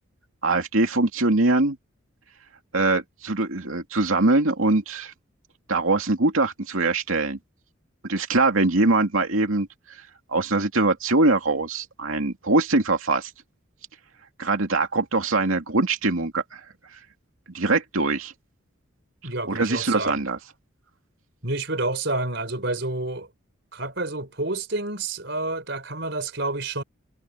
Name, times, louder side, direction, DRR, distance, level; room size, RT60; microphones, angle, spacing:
voice 1, 0.4-1.8 2.7-5.1 5.7-7.4 8.1-9.7 10.3-13.3 14.4-16.6 17.5-18.3 19.5-20.4, right 2 dB, 80° right, 2.5 m, -22 dB
voice 2, 19.2-20.2 21.4-23.3 23.7-26.8, right 2 dB, 55° right, 5.6 m, -29 dB
head